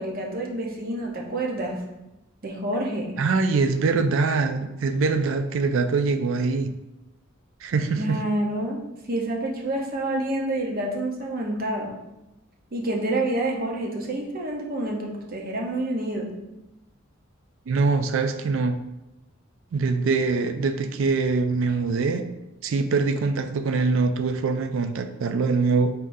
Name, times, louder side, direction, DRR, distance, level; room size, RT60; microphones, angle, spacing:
voice 1, 0.0-1.7 2.4-3.1 7.9-8.8 9.1-11.9 12.7-16.3, right 1 dB, 45° right, 0 dB, 0.7 m, -28 dB
voice 2, 3.2-6.7 7.6-8.2 17.7-18.8 19.7-22.2 22.6-25.9, right 4 dB, 65° right, 8 dB, 0.4 m, -23 dB
4.3 x 3.7 x 2.6 m, 0.93 s
head